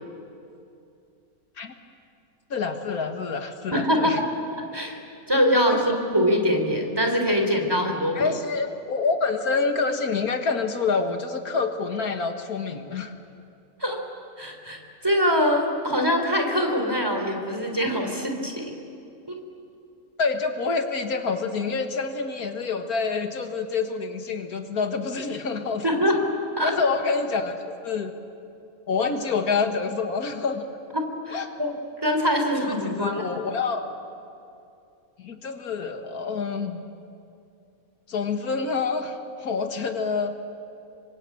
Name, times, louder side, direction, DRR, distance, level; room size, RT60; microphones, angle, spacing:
voice 1, 2.5-4.2 5.7-5.8 8.2-13.1 20.2-25.8 26.6-28.1 28.9-30.6 31.3-31.5 32.5-33.8 35.2-36.8 38.1-40.3, left 4 dB, 90° left, 5 dB, 2.1 m, -27 dB
voice 2, 3.7-4.2 4.5-5.0 5.3-8.3 13.8-14.0 14.4-18.7 19.3-19.4 25.8-26.2 26.6-26.7 30.9-33.2, equal, 15° right, 3 dB, 3.6 m, -24 dB
27.0 x 24.5 x 8.6 m, 2.6 s
omnidirectional pair, 1.5 m